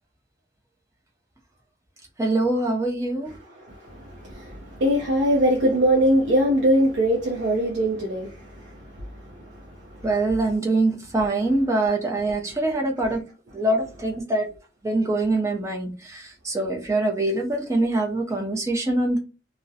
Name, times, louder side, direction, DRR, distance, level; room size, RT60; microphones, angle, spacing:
voice 1, 2.2-3.3 10.0-13.2 13.5-14.5 14.8-19.2, right 2 dB, 15° right, 0.5 m, -24 dB
voice 2, 3.7-8.8, equal, 75° right, 0.5 m, -22 dB
2.4 x 2.0 x 2.6 m
head